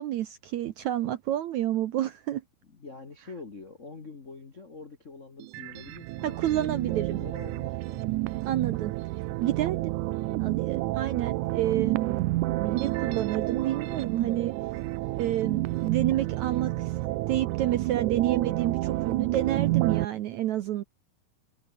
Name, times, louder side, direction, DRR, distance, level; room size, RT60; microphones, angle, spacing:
voice 1, 0.0-2.4 6.2-7.2 8.5-8.9 9.4-10.0 10.4-12.2 12.5-14.5 15.2-16.9 17.3-20.8, right 13 dB, 70° right, 1.8 m, -29 dB
voice 2, 2.6-8.1, left 4 dB, 45° left, 1.0 m, -45 dB
sound 1, 5.4-20.0, right 18 dB, 90° right, 1.7 m, -30 dB
omnidirectional pair, 4.3 m